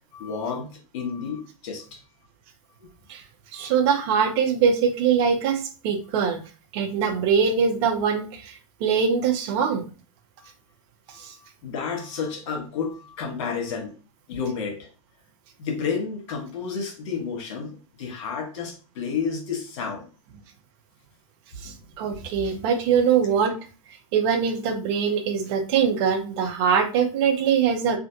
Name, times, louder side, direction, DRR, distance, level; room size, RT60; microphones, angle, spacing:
voice 1, 0.1-0.7 0.9-2.0 3.6-3.7 11.6-13.9 14.3-14.9 15.6-20.0, left 5 dB, 60° left, 2 dB, 1.4 m, -31 dB
voice 2, 3.5-6.4 6.7-9.9 11.1-11.3 21.6-23.6 24.1-28.0, right 7 dB, 50° right, 6 dB, 0.8 m, -23 dB
3.3 x 2.5 x 2.8 m, 0.36 s
hypercardioid pair, 115°, 18 cm